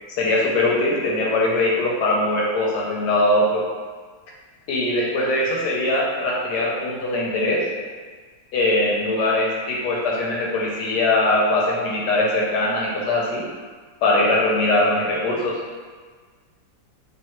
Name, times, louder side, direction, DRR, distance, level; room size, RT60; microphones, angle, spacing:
voice 1, 0.2-3.6 4.7-7.6 8.5-13.5 14.0-15.6, left 2 dB, 70° left, -3 dB, 1.1 m, -21 dB
3.4 x 3.1 x 3.0 m, 1.5 s
omnidirectional pair, 2.1 m